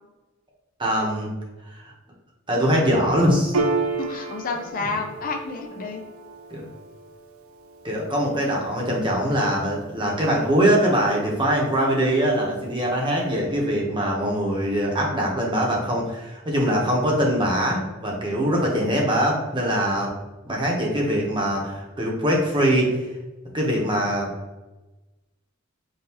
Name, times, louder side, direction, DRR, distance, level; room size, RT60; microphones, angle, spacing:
voice 1, 0.8-1.3 1.7-1.9 2.5-3.6 4.8-4.9 6.5-6.6 7.8-20.1 20.5-23.0 23.5-24.3, equal, 25° right, -2 dB, 1.0 m, -22 dB
Piano, 3.5-10.5, right 3 dB, 80° right, 0.4 m, -32 dB
voice 2, 4.0-6.0, left 4 dB, 40° left, 3 dB, 0.4 m, -30 dB
5.4 x 2.6 x 2.9 m, 1.1 s
head